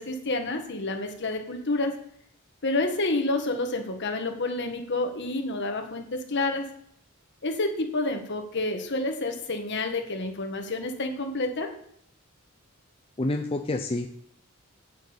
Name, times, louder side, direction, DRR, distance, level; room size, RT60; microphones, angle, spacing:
voice 1, 0.0-2.0 2.6-6.7 7.4-11.7, left 2 dB, 55° left, 5 dB, 1.5 m, -29 dB
voice 2, 13.2-14.1, left 2 dB, 25° left, 4 dB, 0.5 m, -28 dB
9.1 x 8.0 x 5.1 m, 0.67 s
head